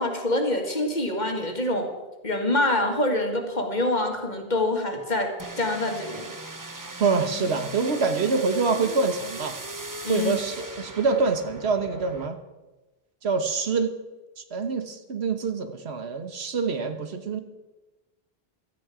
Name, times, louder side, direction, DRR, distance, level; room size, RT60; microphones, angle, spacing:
voice 1, 0.0-1.9 2.2-6.3 10.0-10.3, left 1 dB, 45° left, 3 dB, 2.2 m, -25 dB
sound 1, 5.4-12.3, right 2 dB, 20° right, 0.8 m, -38 dB
voice 2, 7.0-9.6 10.1-12.4 13.2-13.9 14.4-17.4, right 4 dB, 85° right, 8 dB, 1.4 m, -25 dB
17.0 x 13.0 x 5.0 m, 1.1 s
omnidirectional pair, 1.1 m